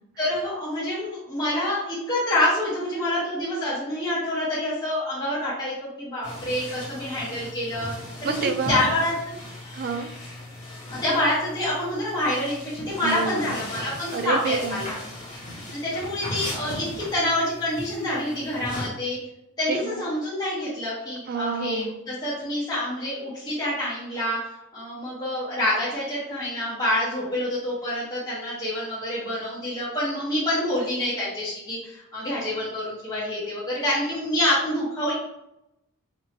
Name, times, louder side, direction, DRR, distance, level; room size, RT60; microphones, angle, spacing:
voice 1, 0.2-8.4 8.7-9.4 10.9-15.0 15.7-19.2 19.6-24.4 24.7-35.1, left 1 dB, 20° left, -10 dB, 0.9 m, -27 dB
sound 1, 6.2-18.9, left 1 dB, 35° left, 1.1 m, -37 dB
voice 2, 8.2-8.8 9.7-10.1 13.0-13.6 14.1-14.8 15.3-15.4 19.7-20.0 21.3-22.0, right 4 dB, 45° right, 6 dB, 0.3 m, -28 dB
4.3 x 2.7 x 2.9 m, 0.86 s
head